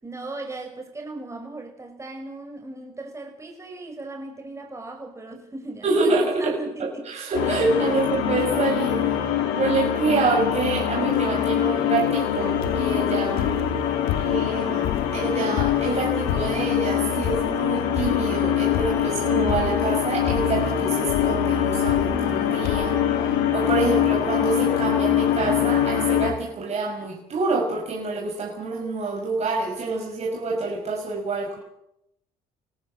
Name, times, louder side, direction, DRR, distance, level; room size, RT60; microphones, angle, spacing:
voice 1, 0.0-7.1, right 2 dB, 15° right, 6.0 m, -37 dB
voice 2, 5.8-9.0 9.5-13.6 14.1-23.0 23.2-31.6, right 3 dB, 40° right, 5.9 m, -27 dB
sound 1, 7.3-26.3, left 9 dB, 85° left, 3.6 m, -23 dB
sound 2, 12.6-13.0 13.4-14.5 14.8-16.8 17.2-17.7 18.0-18.4 18.7-19.2 19.5-20.0 20.3-20.7 21.1-21.4 21.9-22.4 22.6-23.0 23.7-23.8 24.0-24.1, left 14 dB, 70° left, 1.0 m, -31 dB
25.0 x 18.5 x 7.6 m
supercardioid pair, 90°, 16 cm